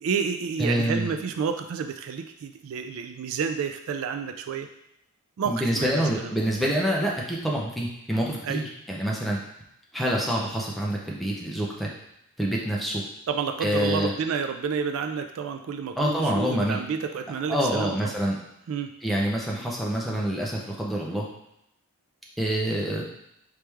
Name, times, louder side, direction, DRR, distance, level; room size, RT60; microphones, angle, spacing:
voice 1, 0.0-4.7 5.4-6.4 8.4-8.7 13.3-18.1 18.7-18.9, right 6 dB, 65° right, 6 dB, 0.3 m, -30 dB
voice 2, 0.6-1.1 5.5-9.4 9.9-11.9 12.4-13.0 13.6-14.1 16.0-16.8 17.5-18.4 19.0-21.2 22.4-23.0, equal, ahead, -3 dB, 0.6 m, -26 dB
4.7 x 3.3 x 3.4 m, 0.80 s
head